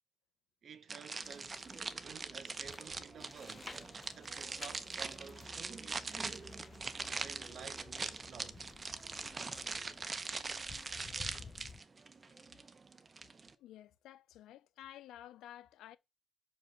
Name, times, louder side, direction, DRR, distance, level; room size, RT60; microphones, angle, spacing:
voice 1, 0.6-3.7 4.1-6.5 7.2-8.6, right 7 dB, 55° right, 1.2 m, -53 dB
sound 1, 0.9-13.5, right 4 dB, 30° right, 0.8 m, -42 dB
sound 2, 1.2-11.8, left 4 dB, 35° left, 0.7 m, -54 dB
voice 2, 13.6-16.0, left 12 dB, 85° left, 0.7 m, -53 dB
5.3 x 5.3 x 6.1 m
cardioid pair, 90°, 0 cm